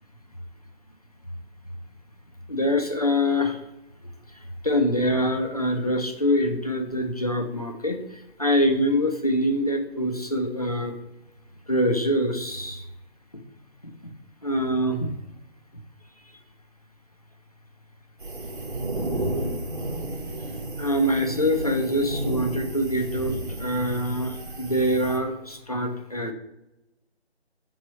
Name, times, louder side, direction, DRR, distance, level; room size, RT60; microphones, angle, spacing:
voice 1, 2.5-3.6 4.6-8.0 8.4-10.9 11.7-12.8 14.4-15.1 20.8-26.3, equal, 35° left, 4 dB, 0.4 m, -24 dB
sound 1, 18.2-25.2, right 1 dB, 55° right, 0.9 m, -32 dB
3.6 x 3.1 x 4.1 m, 0.92 s
figure-of-eight pair, 155°, 32 cm